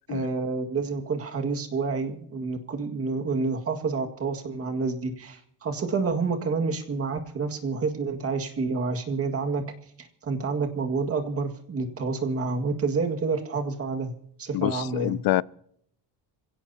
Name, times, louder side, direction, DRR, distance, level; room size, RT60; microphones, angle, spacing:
voice 1, 0.1-9.6 10.0-14.1 14.4-15.2, right 4 dB, 35° right, 2.0 m, -28 dB
voice 2, 14.5-15.4, left 16 dB, 55° left, 0.5 m, -26 dB
26.0 x 17.0 x 2.8 m
cardioid pair, 165°, 41 cm